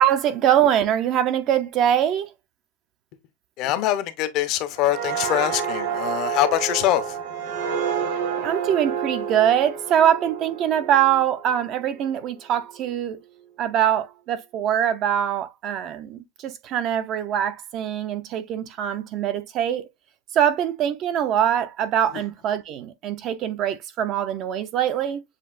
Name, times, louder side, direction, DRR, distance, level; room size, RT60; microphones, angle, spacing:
voice 1, 0.0-2.3 8.4-13.2 13.6-19.9 20.3-25.2, right 10 dB, 30° right, 0.4 m, -23 dB
voice 2, 3.6-7.2 22.1-22.2, left 14 dB, 35° left, 0.6 m, -23 dB
sound 1, 4.8-12.2 12.6-12.9, right 7 dB, 60° right, 1.3 m, -29 dB
7.3 x 2.7 x 2.4 m
supercardioid pair, 175°, 0 cm